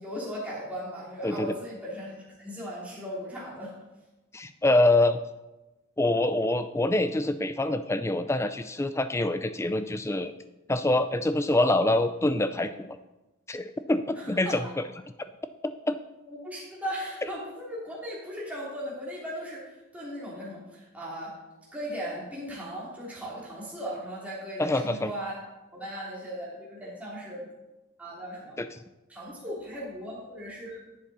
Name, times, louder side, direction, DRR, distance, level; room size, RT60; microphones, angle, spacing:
voice 1, 0.0-3.7 14.1-14.6 16.3-21.3 21.7-25.3 25.7-27.5 28.0-28.6 29.1-30.8, equal, 5° right, -6 dB, 2.9 m, -37 dB
voice 2, 1.2-1.5 4.3-5.2 6.0-10.3 10.7-12.9 13.5-14.6 15.9-16.0 24.6-25.1 28.6-28.7, left 2 dB, 10° left, 11 dB, 0.3 m, -25 dB
10.5 x 7.6 x 4.2 m, 1.0 s
head